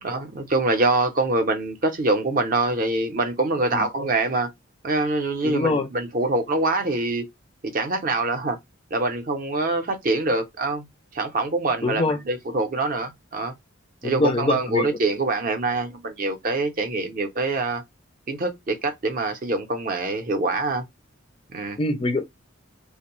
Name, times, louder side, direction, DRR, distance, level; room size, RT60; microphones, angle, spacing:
voice 1, 0.0-4.5 4.8-7.3 7.6-8.6 8.9-10.9 11.1-13.5 14.0-17.8 18.3-20.9 21.5-21.8, right 2 dB, 40° right, 0.5 m, -24 dB
voice 2, 5.4-5.9 11.8-12.2 14.0-15.0 21.8-22.2, left 2 dB, 25° left, 0.3 m, -24 dB
2.5 x 2.0 x 2.9 m
head